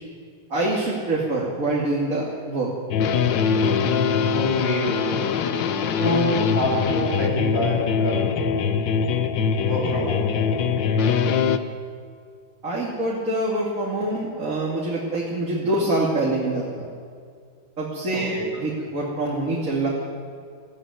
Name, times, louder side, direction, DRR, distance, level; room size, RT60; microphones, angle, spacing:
voice 1, 0.5-2.7 12.6-16.9 17.8-19.9, right 2 dB, 45° right, -3 dB, 3.0 m, -25 dB
sound 1, 2.9-11.6, left 6 dB, 75° left, 1.6 m, -22 dB
voice 2, 4.3-5.5 6.0-8.6 9.6-11.4 18.1-18.5, left 1 dB, 50° left, -2 dB, 6.7 m, -27 dB
18.5 x 15.5 x 9.6 m, 2.2 s
omnidirectional pair, 2.0 m